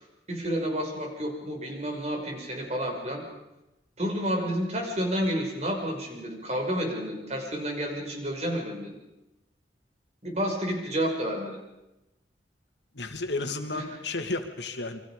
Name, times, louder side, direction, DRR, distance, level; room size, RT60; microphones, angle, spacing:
voice 1, 0.0-3.2 4.0-9.0 10.2-11.6 13.7-13.9, equal, 40° right, 1 dB, 6.4 m, -30 dB
voice 2, 12.9-15.0, left 3 dB, 80° left, 6 dB, 2.8 m, -32 dB
29.5 x 24.5 x 5.3 m, 0.92 s
head